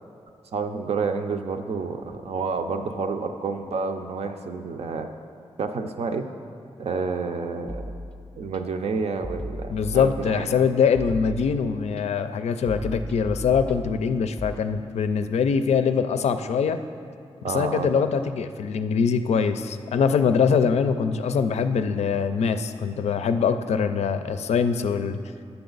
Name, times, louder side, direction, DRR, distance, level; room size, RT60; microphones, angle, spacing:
voice 1, 0.5-5.1 5.6-6.2 6.8-7.9 8.4-10.5 12.8-12.9 17.4-18.1, right 4 dB, 75° right, 6 dB, 0.6 m, -29 dB
sound 1, 7.7-8.6 9.2-10.6 10.9-12.0 12.7-14.5, left 1 dB, 10° left, 0.6 m, -36 dB
voice 2, 9.7-16.8 17.4-25.2, left 6 dB, 85° left, 10 dB, 0.4 m, -23 dB
9.4 x 6.9 x 3.9 m, 2.4 s
cardioid pair, 80°, 11 cm